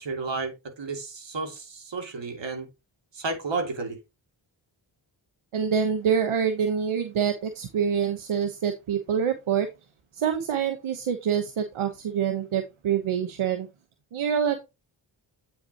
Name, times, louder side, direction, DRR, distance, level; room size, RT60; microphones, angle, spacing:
voice 1, 0.0-2.7 3.1-4.0, right 3 dB, 60° right, 2.9 m, -32 dB
voice 2, 5.5-9.7 10.1-13.7 14.1-14.6, right 7 dB, 85° right, 1.2 m, -26 dB
8.8 x 5.9 x 3.0 m
cardioid pair, 50°, 48 cm